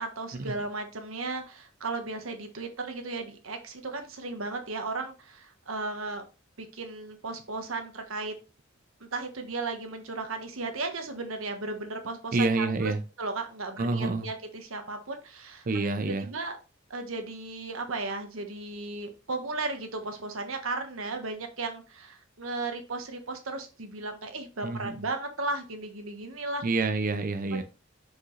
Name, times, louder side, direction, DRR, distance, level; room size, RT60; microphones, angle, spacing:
voice 1, 0.0-6.2 6.6-8.3 9.0-12.9 13.2-15.6 16.0-16.6 16.9-26.6 27.5-27.6, right 3 dB, 85° right, 1.3 m, -35 dB
voice 2, 12.3-13.0 13.8-14.3 15.7-16.3 24.6-25.0 26.6-27.6, right 3 dB, 45° right, 0.5 m, -28 dB
6.1 x 5.1 x 3.2 m
head